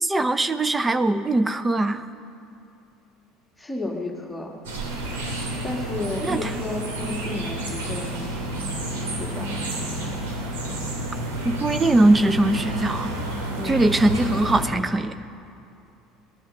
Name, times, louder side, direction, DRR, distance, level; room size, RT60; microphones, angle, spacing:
voice 1, 0.0-2.0 6.2-6.5 11.4-13.1 13.6-15.1, right 2 dB, 15° right, 11 dB, 0.8 m, -21 dB
voice 2, 3.6-4.5 5.6-8.3 9.2-9.5 13.6-13.8, left 2 dB, 5° left, 0 dB, 1.9 m, -32 dB
sound 1, 4.6-14.7, right 1 dB, 70° right, 2.7 m, -30 dB
19.0 x 11.5 x 6.5 m, 2.6 s
figure-of-eight pair, 65°, 0 cm